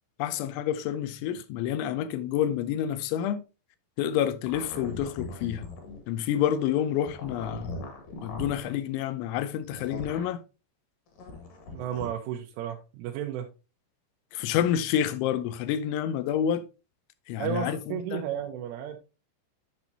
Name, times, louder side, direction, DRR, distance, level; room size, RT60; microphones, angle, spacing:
voice 1, 0.2-3.4 4.0-5.7 6.1-7.7 8.2-10.4 14.3-16.7 17.3-18.2, left 10 dB, 80° left, 2.9 m, -28 dB
sound 1, 4.5-6.0 7.0-8.7 9.6-10.3 11.1-12.1, left 2 dB, 55° left, 2.7 m, -39 dB
voice 2, 11.7-13.5 17.4-19.0, right 9 dB, 90° right, 3.3 m, -33 dB
9.9 x 6.0 x 2.7 m
omnidirectional pair, 5.6 m